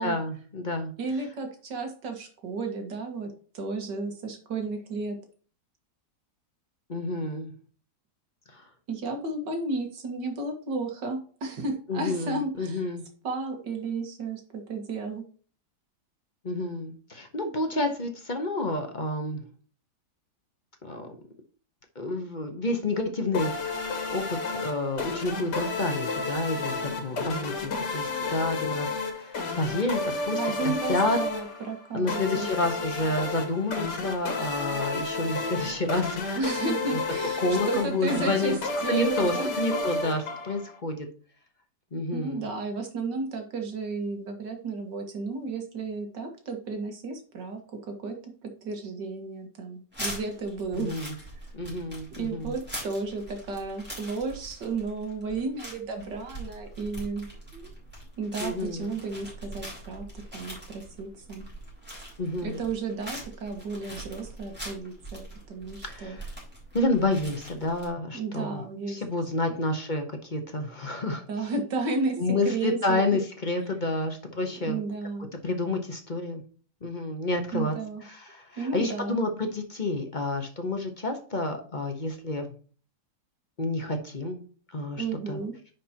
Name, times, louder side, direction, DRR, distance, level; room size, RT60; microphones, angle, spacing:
voice 1, 0.0-0.9 6.9-7.5 8.5-8.6 11.9-13.0 16.4-19.4 20.8-21.1 21.9-28.9 29.1-30.4 30.9-31.2 31.9-36.4 37.4-38.5 38.9-41.1 41.9-42.5 50.7-51.1 51.5-52.5 58.4-58.9 62.2-62.6 65.9-66.3 66.7-68.6 68.9-71.2 72.2-74.8 75.4-76.4 76.8-77.7 78.0-82.5 83.6-84.4 84.7-85.4, left 2 dB, 30° left, 5 dB, 1.1 m, -29 dB
voice 2, 1.0-5.2 8.9-12.9 13.2-15.2 30.4-32.5 36.4-38.6 38.8-39.5 42.1-47.6 47.9-50.9 51.2-51.3 52.1-57.3 57.5-57.7 58.2-60.1 60.3-61.5 62.4-66.2 68.1-69.0 71.3-73.2 74.4-75.3 77.5-78.0 78.6-79.2 84.9-85.6, right 3 dB, 90° right, 4 dB, 2.3 m, -33 dB
sound 1, 23.3-40.8, left 3 dB, 80° left, 1.9 m, -32 dB
sound 2, 49.9-67.9, right 1 dB, 5° right, 3.5 m, -42 dB
10.0 x 5.2 x 2.9 m, 0.41 s
omnidirectional pair, 1.8 m